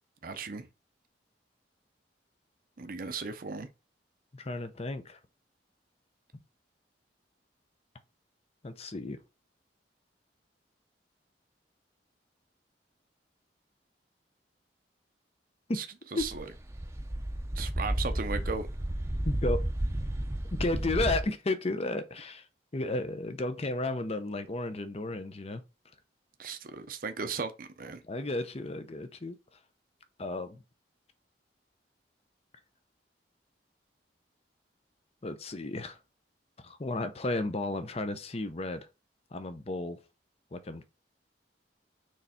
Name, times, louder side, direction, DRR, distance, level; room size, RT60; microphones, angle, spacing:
voice 1, 0.2-0.7 2.8-3.7 15.7-15.8 16.1-16.5 17.5-18.7 26.4-28.0, right 4 dB, 55° right, 0.6 m, -36 dB
voice 2, 4.3-5.2 8.6-9.2 15.7-15.8 16.1-16.3 19.2-19.6 20.5-22.5 22.7-25.6 28.1-29.4 30.2-30.6 35.2-36.0 36.6-38.9 39.3-40.0 40.5-40.8, left 2 dB, 35° left, 0.7 m, -33 dB
sound 1, 16.2-21.2, right 1 dB, 15° right, 0.7 m, -32 dB
6.5 x 3.4 x 4.3 m
head